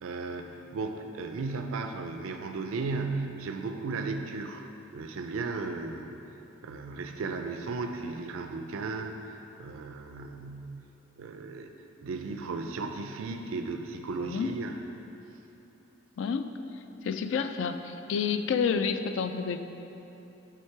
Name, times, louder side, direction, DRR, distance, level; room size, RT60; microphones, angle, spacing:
voice 1, 0.0-6.3 6.6-10.6 11.2-11.7 12.0-14.8, right 3 dB, 85° right, 5 dB, 0.4 m, -35 dB
voice 2, 14.2-14.5 16.2-16.6 17.0-19.6, left 6 dB, 65° left, 9 dB, 0.3 m, -29 dB
8.4 x 3.7 x 4.5 m, 2.9 s
head